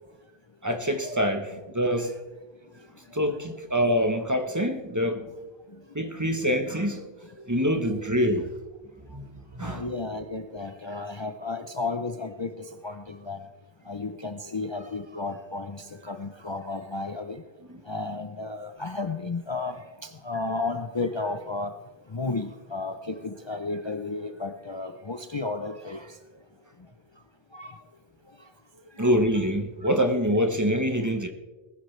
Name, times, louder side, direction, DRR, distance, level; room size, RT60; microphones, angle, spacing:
voice 1, 0.6-1.5 1.7-2.1 3.1-5.3 5.9-7.0 7.4-8.5 9.1-9.2 9.5-9.8 17.7-17.8 29.0-31.3, equal, 20° right, 0.9 m, -25 dB
voice 2, 9.6-12.5 12.8-13.0 13.3-13.4 13.9-15.7 16.1-17.4 17.9-19.8 20.2-21.7 22.1-26.0 27.5-27.7 29.0-29.2, left 3 dB, 30° left, 0.6 m, -32 dB
20.0 x 11.0 x 3.2 m
omnidirectional pair, 1.1 m